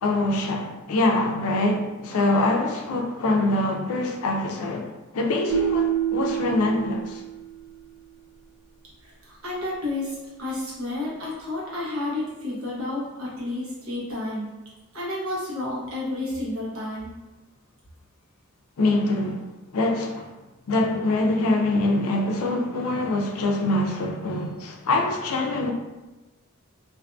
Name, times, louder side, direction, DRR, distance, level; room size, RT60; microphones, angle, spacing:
voice 1, 0.0-7.2 18.8-19.5 19.7-20.3 20.7-25.7, left 2 dB, 80° left, 0.4 m, -24 dB
sound 1, 5.5-7.7, right 10 dB, 40° right, 1.4 m, -27 dB
voice 2, 9.0-14.5 14.9-17.1, left 2 dB, 70° right, 1.0 m, -31 dB
2.6 x 2.5 x 2.3 m
head